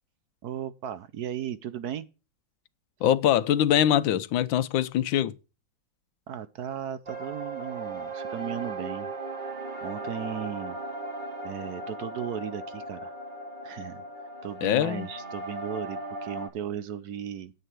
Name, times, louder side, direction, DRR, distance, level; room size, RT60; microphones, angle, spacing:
voice 1, 0.4-2.1 6.3-9.1 9.8-10.8 11.4-13.1 13.6-17.5, right 9 dB, 60° right, 1.2 m, -36 dB
voice 2, 3.0-5.3 14.6-15.1, left 11 dB, 90° left, 1.5 m, -23 dB
sound 1, 7.1-16.5, right 2 dB, 25° right, 2.3 m, -37 dB
9.5 x 8.8 x 6.0 m
omnidirectional pair, 2.0 m